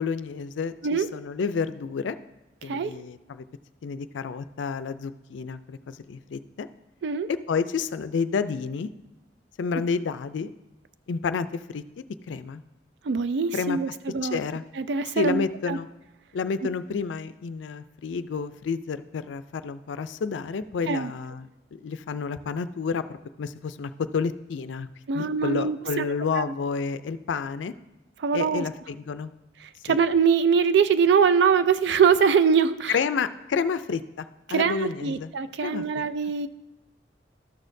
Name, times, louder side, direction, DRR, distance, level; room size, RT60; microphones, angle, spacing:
voice 1, 0.0-2.2 2.6-3.4 3.8-6.7 7.3-8.9 9.6-10.5 11.1-11.8 12.3-12.6 13.5-13.8 14.2-14.6 15.2-15.9 16.3-23.0 23.4-24.9 25.1-27.7 28.3-29.3 29.9-30.0 32.9-35.3 35.6-36.0, left 5 dB, 90° left, 12 dB, 0.4 m, -30 dB
voice 2, 13.0-14.4 14.8-15.8 20.9-21.1 25.1-26.4 28.2-28.6 29.8-33.0 34.5-36.5, right 6 dB, 70° right, 13 dB, 0.4 m, -23 dB
13.0 x 6.3 x 2.6 m, 1.0 s
head